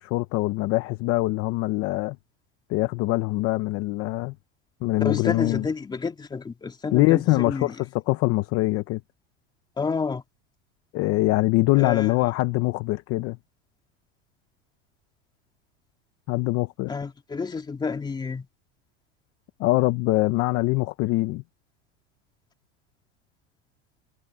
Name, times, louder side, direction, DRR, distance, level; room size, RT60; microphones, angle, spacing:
voice 1, 0.0-2.2 2.7-4.3 4.8-5.6 6.9-7.8 8.1-9.0 10.9-13.4 16.3-16.9 19.6-21.4, left 20 dB, 45° left, 0.9 m, -23 dB
voice 2, 5.0-7.8 9.8-10.2 11.8-12.3 16.9-18.5, left 5 dB, 15° left, 3.0 m, -30 dB
supercardioid pair, 155°, 32 cm